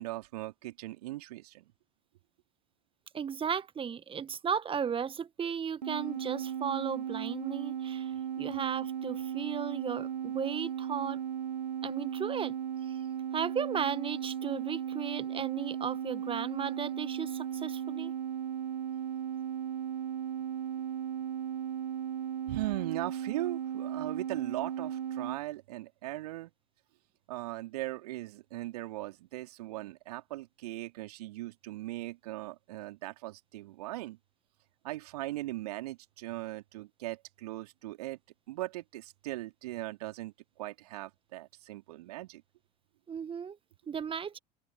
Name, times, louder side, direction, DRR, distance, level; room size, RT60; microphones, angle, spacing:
voice 1, 0.0-1.6 22.5-26.5 27.3-34.2 34.8-38.2 38.5-42.4, right 17 dB, 65° right, 3.0 m, -39 dB
voice 2, 3.1-8.1 8.4-11.2 11.8-12.6 12.9-13.0 13.3-18.1 43.1-43.6 43.9-44.4, right 7 dB, 25° right, 1.7 m, -35 dB
sound 1, 5.8-25.4, right 9 dB, 80° right, 0.5 m, -36 dB
open air
figure-of-eight pair, 75°, 21 cm